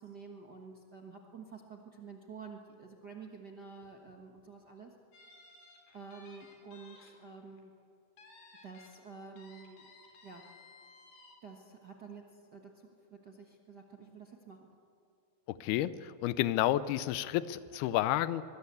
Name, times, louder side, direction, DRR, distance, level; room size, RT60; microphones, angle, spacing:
voice 1, 0.0-4.9 5.9-7.7 8.6-9.9 10.2-10.5 11.4-14.7, right 5 dB, 70° right, 1 dB, 0.9 m, -50 dB
sound 1, 5.1-7.1 7.5-7.6 8.2-8.9 9.4-11.4, left 3 dB, 75° left, 5.3 m, -57 dB
voice 2, 15.5-18.4, left 13 dB, 90° left, 15 dB, 2.7 m, -31 dB
24.0 x 21.5 x 8.3 m, 2.5 s
omnidirectional pair, 4.4 m